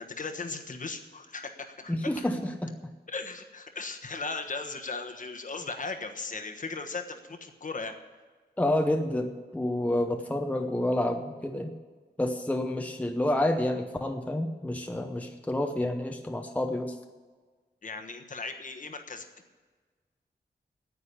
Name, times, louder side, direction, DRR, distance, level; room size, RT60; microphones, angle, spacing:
voice 1, 0.0-2.3 3.1-7.9 17.8-19.3, left 4 dB, 45° left, 5 dB, 1.3 m, -37 dB
voice 2, 1.9-2.4 8.6-11.7 12.2-17.0, left 1 dB, 10° left, 4 dB, 0.8 m, -29 dB
9.7 x 8.6 x 9.8 m, 1.4 s
wide cardioid pair, 130°, 18 cm